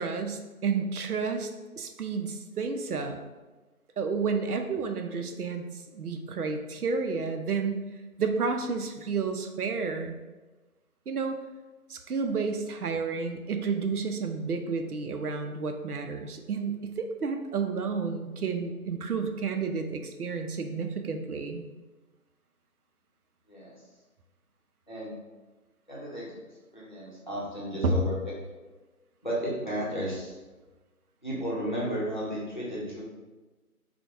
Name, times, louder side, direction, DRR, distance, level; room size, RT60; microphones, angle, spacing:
voice 1, 0.0-1.5 1.8-3.2 4.0-5.6 5.9-7.8 8.2-10.1 11.1-11.4 11.9-21.7 27.8-28.0, right 5 dB, 85° right, 5 dB, 0.5 m, -31 dB
voice 2, 23.5-23.8 24.9-25.2 25.9-28.3 29.2-30.4 31.2-33.0, right 1 dB, 35° left, -7 dB, 0.7 m, -34 dB
3.3 x 2.2 x 2.9 m, 1.2 s
figure-of-eight pair, 165°, 44 cm